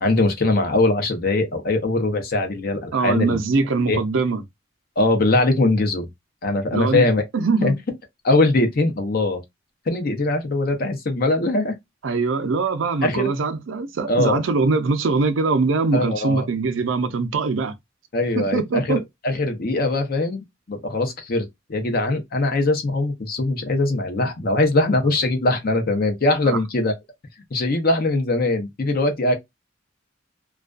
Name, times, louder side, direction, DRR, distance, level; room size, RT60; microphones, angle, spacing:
voice 1, 0.0-3.4 3.9-4.0 5.0-6.1 6.4-7.2 7.6-7.7 8.2-9.4 9.9-11.7 13.0-13.3 14.1-14.4 15.9-16.5 18.1-26.9 27.5-29.3, left 2 dB, 50° left, 0.6 m, -21 dB
voice 2, 2.9-4.4 6.7-7.0 7.3-7.8 12.0-17.7 18.4-19.0 26.5-26.6, right 4 dB, 80° right, 0.5 m, -22 dB
2.3 x 2.2 x 2.3 m
head